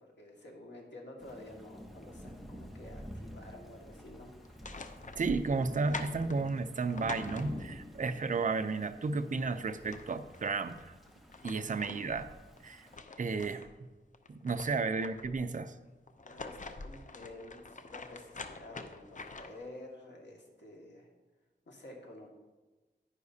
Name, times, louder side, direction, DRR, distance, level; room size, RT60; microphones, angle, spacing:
voice 1, 0.0-4.3 16.2-21.1 21.7-22.3, left 1 dB, 70° left, 0 dB, 1.8 m, -50 dB
Thunder / Rain, 1.2-13.0, equal, ahead, 1.0 m, -49 dB
sound 1, 4.4-7.9 9.4-9.5 9.7-10.6 11.1-13.7 14.1-15.5 16.1-19.7, left 3 dB, 40° left, 0.6 m, -46 dB
voice 2, 5.2-10.9 11.4-12.3 12.6-12.9 13.2-13.7 14.3-15.7, right 4 dB, 45° right, 9 dB, 0.5 m, -33 dB
10.5 x 9.9 x 2.7 m, 1.2 s
wide cardioid pair, 100°, 19 cm